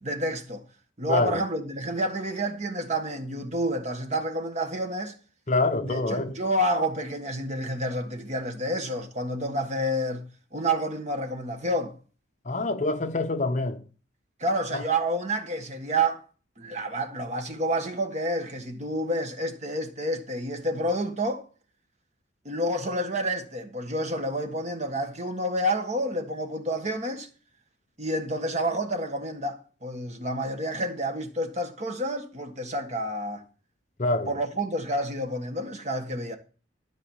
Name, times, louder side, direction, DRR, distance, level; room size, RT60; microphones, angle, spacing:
voice 1, 0.0-0.6 1.0-5.1 5.8-10.2 10.5-11.9 14.4-16.2 16.6-21.4 22.4-27.3 28.0-33.4 34.3-36.4, right 1 dB, 35° right, 1.5 m, -29 dB
voice 2, 1.1-1.4 5.5-6.3 12.4-13.8 14.7-14.8 34.0-34.3, left 2 dB, 40° left, 0.9 m, -26 dB
13.0 x 4.9 x 7.2 m
head